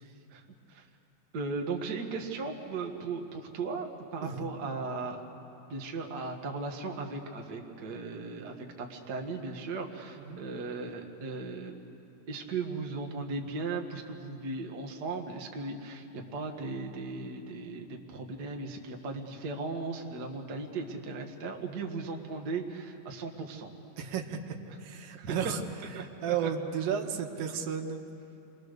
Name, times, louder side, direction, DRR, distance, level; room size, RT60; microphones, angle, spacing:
voice 1, 0.3-0.9 1.3-5.2 5.7-11.7 12.3-23.7 25.2-25.5 25.9-26.3, right 3 dB, 40° right, 2 dB, 1.5 m, -37 dB
voice 2, 24.0-25.6 26.0-28.0, right 7 dB, 85° right, 4 dB, 3.0 m, -33 dB
29.5 x 23.0 x 6.7 m, 2.8 s
omnidirectional pair, 3.9 m